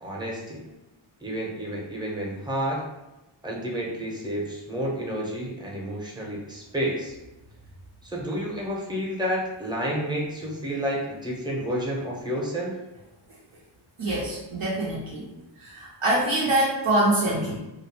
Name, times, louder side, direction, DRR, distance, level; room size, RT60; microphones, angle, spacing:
voice 1, 0.0-0.6 1.2-2.8 3.4-7.1 8.0-12.7, equal, 10° right, -4 dB, 0.6 m, -30 dB
voice 2, 14.0-15.3 15.6-17.6, right 1 dB, 90° right, -6 dB, 0.6 m, -24 dB
2.4 x 2.0 x 2.8 m, 1.0 s
wide cardioid pair, 70°, 48 cm